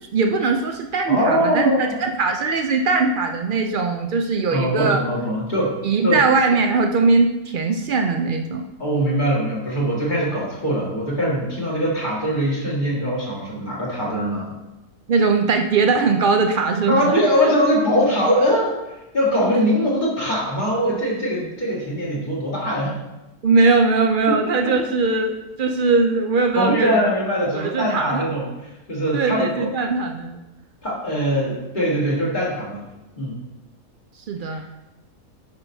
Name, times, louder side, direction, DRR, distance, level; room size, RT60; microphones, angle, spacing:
voice 1, 0.1-5.0 5.8-8.7 15.1-17.2 23.4-27.0 27.5-28.2 29.1-30.4 34.3-34.6, right 4 dB, 75° right, 4 dB, 0.4 m, -20 dB
voice 2, 1.1-2.0 4.5-5.7 6.0-6.2 8.8-14.5 16.9-23.0 24.3-24.4 26.5-29.7 30.8-32.8 33.2-33.4 34.5-34.7, equal, 35° left, -6 dB, 2.0 m, -22 dB
8.9 x 5.9 x 2.7 m, 0.99 s
omnidirectional pair, 1.5 m